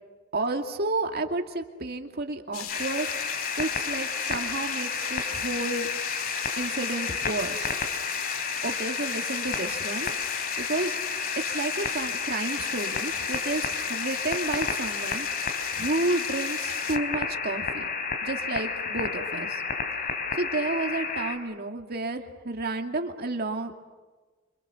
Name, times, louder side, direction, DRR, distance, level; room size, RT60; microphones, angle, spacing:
voice 1, 0.3-3.1 3.6-5.9 6.6-7.7 8.6-11.0 11.5-15.3 15.7-17.9 18.2-19.6 20.3-23.8, right 2 dB, 50° right, 4 dB, 2.4 m, -31 dB
sound 1, 2.5-17.0, left 9 dB, 80° left, 1.9 m, -37 dB
sound 2, 2.7-21.4, left 5 dB, 45° left, 3.2 m, -31 dB
26.5 x 26.5 x 7.1 m, 1.3 s
head